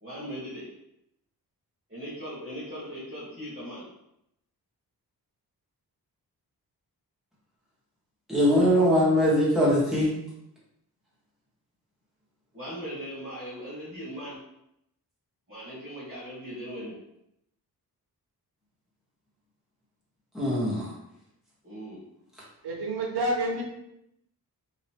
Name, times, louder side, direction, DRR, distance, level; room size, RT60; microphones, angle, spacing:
voice 1, 0.0-0.6 1.9-3.8 12.5-14.3 15.5-16.9 21.6-22.0, equal, 25° right, 1.4 m, -39 dB
voice 2, 8.3-10.1 20.3-20.8, equal, ahead, 1.4 m, -21 dB
voice 3, 22.6-23.6, right 1 dB, 90° right, 0.9 m, -28 dB
2.9 x 2.9 x 2.8 m
wide cardioid pair, 120°, 39 cm